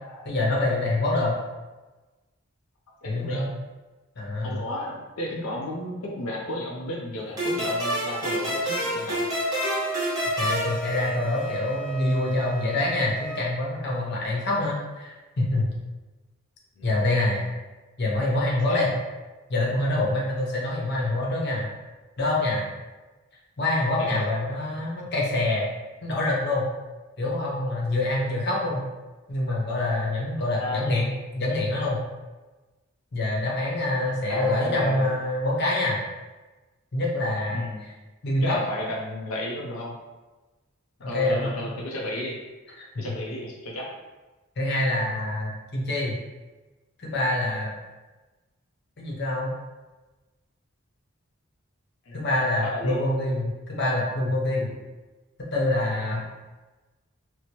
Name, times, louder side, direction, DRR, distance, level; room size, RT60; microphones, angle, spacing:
voice 1, 0.2-1.4 3.0-3.5 4.2-4.6 10.4-15.7 16.8-17.4 18.0-18.9 19.5-21.7 22.2-22.6 23.6-25.7 26.0-26.7 27.2-28.9 29.3-32.0 33.1-36.0 36.9-37.6 38.2-38.6 41.0-41.7 44.6-46.1 47.0-47.7 49.0-49.5 52.1-54.7 55.5-56.2, left 2 dB, 50° left, -4 dB, 0.8 m, -25 dB
voice 2, 3.0-3.5 4.4-9.3 16.8-17.0 18.7-18.9 24.0-24.2 30.5-31.0 34.3-35.1 37.5-37.9 38.4-40.0 41.1-42.4 43.0-43.9 52.1-52.2 52.6-53.0, left 1 dB, 85° left, -2 dB, 0.5 m, -33 dB
sound 1, 7.4-11.7, equal, 20° right, 0.9 m, -28 dB
Wind instrument woodwind instrument, 9.5-13.4, right 4 dB, 5° left, 0.4 m, -35 dB
4.4 x 2.0 x 2.8 m, 1.2 s
head